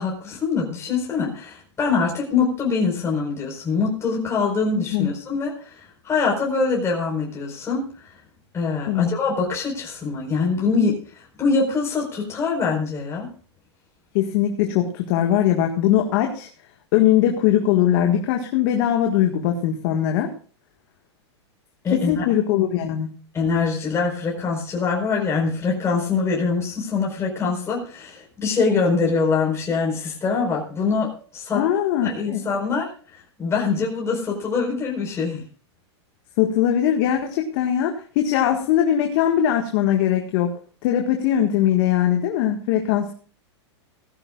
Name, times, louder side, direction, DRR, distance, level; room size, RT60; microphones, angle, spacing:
voice 1, 0.0-7.8 8.5-13.3 21.8-22.3 23.3-31.6 32.0-35.4, left 4 dB, 20° left, -2 dB, 4.6 m, -24 dB
voice 2, 14.1-16.5 16.9-20.3 21.9-23.1 31.5-32.4 36.4-40.5 40.8-43.1, left 10 dB, 50° left, 3 dB, 1.7 m, -20 dB
17.5 x 14.5 x 2.4 m, 0.41 s
hypercardioid pair, 130°, 15 cm